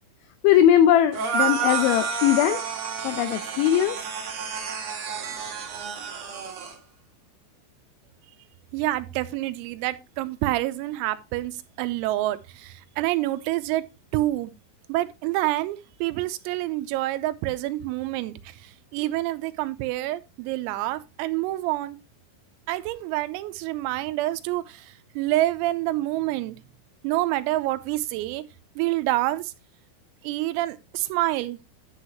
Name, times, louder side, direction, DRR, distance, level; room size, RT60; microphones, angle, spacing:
voice 1, 0.4-2.6 3.0-4.0, left 11 dB, 80° left, 2.7 m, -19 dB
sound 1, 1.1-6.7, right 6 dB, 70° right, 1.5 m, -30 dB
voice 2, 8.7-13.8 14.1-14.5 14.9-22.0 22.7-26.6 27.0-28.4 28.8-29.5 30.2-31.6, right 16 dB, 90° right, 3.5 m, -27 dB
10.5 x 8.1 x 2.9 m
omnidirectional pair, 6.0 m